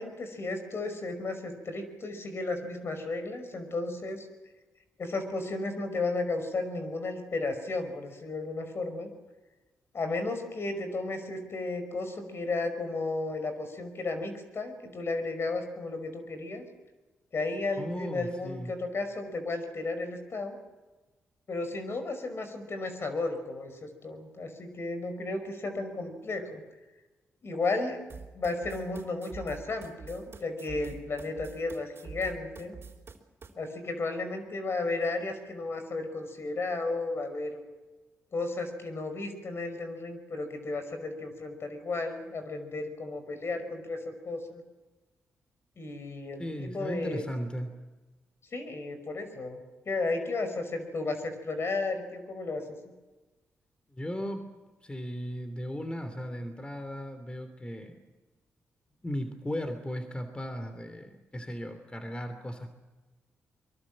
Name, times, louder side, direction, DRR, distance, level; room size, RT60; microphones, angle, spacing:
voice 1, 0.0-4.3 5.0-9.1 9.9-16.6 17.3-20.6 21.5-26.6 27.4-28.0 28.3-32.8 33.6-37.6 38.3-44.0 44.2-44.6 45.8-47.2 48.5-52.6, left 3 dB, 55° left, 8 dB, 5.6 m, -34 dB
voice 2, 17.8-18.7 46.4-47.7 53.9-54.5 54.8-58.0 59.0-62.8, equal, 20° left, 7 dB, 3.1 m, -36 dB
sound 1, 28.1-33.5, right 5 dB, 50° right, 3.9 m, -46 dB
23.5 x 23.0 x 7.6 m, 1.2 s
supercardioid pair, 55°, 5 cm